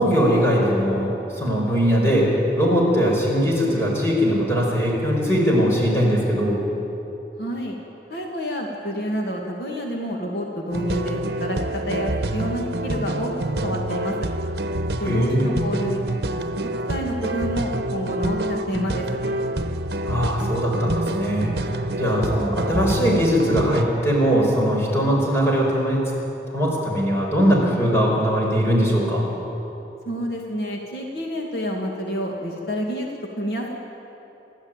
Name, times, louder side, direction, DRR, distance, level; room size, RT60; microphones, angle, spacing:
voice 1, 0.0-6.6 15.0-15.5 20.0-26.0 26.5-29.3, equal, 15° left, -3 dB, 5.4 m, -20 dB
voice 2, 7.4-7.8 8.1-13.3 13.6-14.3 15.0-16.2 16.9-19.1 30.1-33.1 33.4-33.8, equal, 65° left, 0 dB, 2.3 m, -28 dB
sound 1, 10.7-23.8, right 1 dB, 65° right, 1.1 m, -27 dB
30.0 x 12.5 x 9.0 m, 3.0 s
head